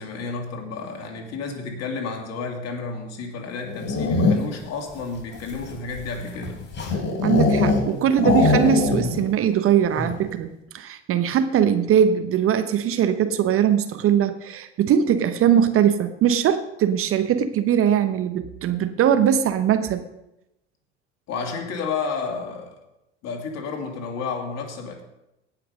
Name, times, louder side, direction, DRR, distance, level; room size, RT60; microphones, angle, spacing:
voice 1, 0.0-6.6 21.3-22.8 23.2-25.0, left 4 dB, 45° left, 3 dB, 2.7 m, -31 dB
sound 1, 3.6-4.7 5.3-7.9 8.2-9.3 9.5-9.6 9.9-10.3, left 3 dB, 30° left, 4.0 m, -22 dB
voice 2, 7.2-20.0, right 9 dB, 40° right, 10 dB, 0.9 m, -21 dB
17.0 x 5.9 x 5.2 m, 0.89 s
hypercardioid pair, 75°, 35 cm